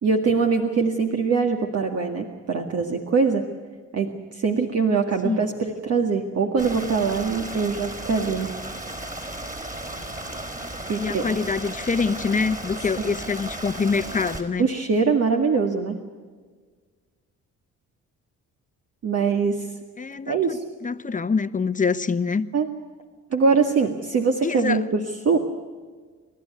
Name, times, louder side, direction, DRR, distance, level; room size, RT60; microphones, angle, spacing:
voice 1, 0.0-3.5 3.9-8.5 10.9-11.3 13.0-13.2 14.6-16.0 19.0-19.7 20.3-20.6 22.5-22.7 23.3-25.0 25.3-25.4, right 5 dB, 55° right, 3 dB, 2.0 m, -23 dB
Stream, 6.6-14.4, right 1 dB, 25° right, 4.5 m, -35 dB
voice 2, 10.9-14.7 20.0-22.5 24.4-24.8, left 5 dB, 25° left, 12 dB, 1.0 m, -25 dB
29.0 x 13.0 x 9.5 m, 1.5 s
cardioid pair, 90°, 30 cm